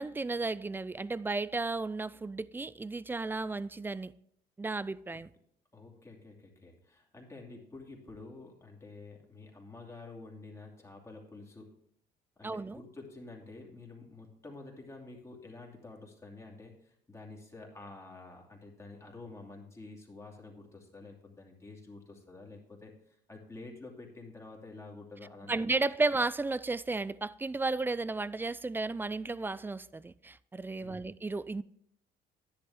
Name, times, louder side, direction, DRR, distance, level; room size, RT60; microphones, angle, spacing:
voice 1, 0.0-4.1 4.6-5.3 12.4-12.8 25.5-31.6, right 3 dB, 10° right, 0.3 m, -33 dB
voice 2, 5.7-11.7 12.4-25.8 30.8-31.1, left 3 dB, 15° left, 2.6 m, -49 dB
10.5 x 10.5 x 3.6 m
cardioid pair, 110°, 17 cm